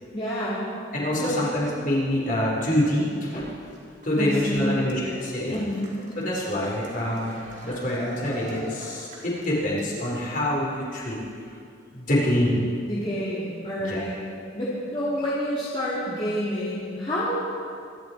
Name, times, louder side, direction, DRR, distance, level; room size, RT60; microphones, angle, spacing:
voice 1, 0.1-0.6 1.2-1.5 4.2-4.8 5.5-5.9 12.8-14.2 14.5-17.4, equal, 30° left, -8 dB, 2.4 m, -28 dB
voice 2, 0.9-3.5 4.0-5.6 6.2-11.2 11.9-12.6 13.9-14.1, left 1 dB, 45° left, -4 dB, 4.4 m, -26 dB
Cheering, 3.2-10.1, right 1 dB, 40° right, 4.3 m, -44 dB
24.0 x 12.0 x 4.7 m, 2.4 s
head